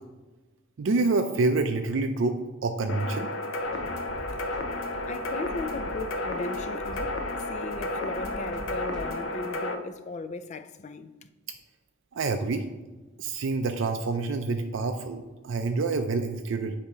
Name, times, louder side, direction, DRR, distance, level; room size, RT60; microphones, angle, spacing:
voice 1, 0.8-2.4 2.6-3.3 12.1-12.7 13.2-16.8, right 3 dB, 65° right, 0.4 m, -27 dB
sound 1, 2.9-9.8, left 2 dB, 75° left, 0.6 m, -32 dB
sound 2, 3.6-9.2, equal, 5° left, 1.7 m, -42 dB
voice 2, 5.1-11.3, left 3 dB, 35° left, 0.3 m, -37 dB
8.3 x 2.8 x 4.9 m
head